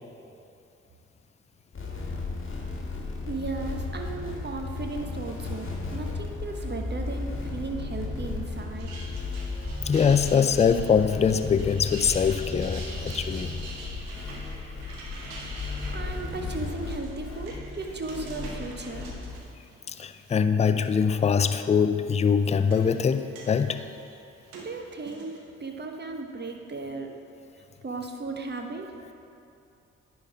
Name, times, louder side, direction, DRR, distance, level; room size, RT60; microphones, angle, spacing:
sound 1, 1.7-19.4, left 3 dB, 35° left, 1.8 m, -35 dB
voice 1, 3.3-8.9 15.5-19.1 24.5-25.3 25.6-27.1 27.8-28.9, right 3 dB, 30° right, 3 dB, 1.1 m, -36 dB
sound 2, 8.6-20.3 20.8-21.4 22.2-25.4, right 2 dB, 75° right, 1.1 m, -45 dB
voice 2, 9.9-13.5 19.9-23.8, left 6 dB, 20° left, 11 dB, 0.4 m, -23 dB
10.0 x 4.2 x 4.8 m, 2.6 s
hypercardioid pair, 40°, 35 cm